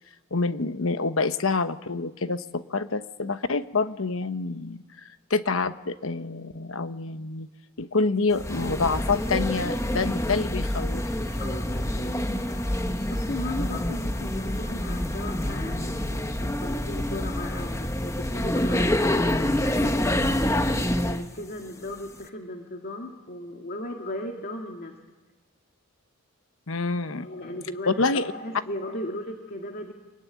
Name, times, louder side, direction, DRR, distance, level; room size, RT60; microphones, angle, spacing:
voice 1, 0.3-4.8 5.3-7.5 7.8-11.4 26.7-27.3 27.9-28.3, left 3 dB, 65° left, 11 dB, 1.0 m, -27 dB
sound 1, 8.3-21.3, left 1 dB, 15° left, 1.0 m, -27 dB
sound 2, 8.9-21.5 21.9-23.6, left 1 dB, 90° left, 7.0 m, -56 dB
voice 2, 11.4-12.1 13.1-20.3 20.7-25.0 27.2-29.9, left 1 dB, 45° left, 3 dB, 2.0 m, -37 dB
25.5 x 23.0 x 9.4 m, 1.2 s
head